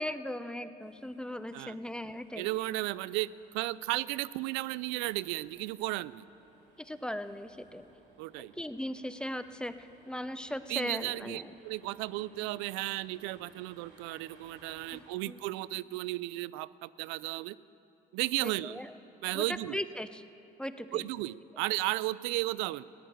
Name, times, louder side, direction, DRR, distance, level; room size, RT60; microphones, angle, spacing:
voice 1, 0.0-2.5 6.8-7.9 8.4-11.5 14.9-15.4 18.4-18.9 19.3-20.2 20.6-21.0, left 1 dB, 5° left, 11 dB, 0.6 m, -38 dB
sound 1, 0.8-15.0, right 2 dB, 65° right, 3.2 m, -62 dB
voice 2, 2.4-3.3 3.5-6.2 8.2-8.5 10.7-17.6 18.1-18.8 19.2-19.8 20.9-22.8, right 19 dB, 80° right, 19 dB, 0.4 m, -34 dB
15.5 x 10.0 x 9.0 m, 2.8 s
supercardioid pair, 80°, 19 cm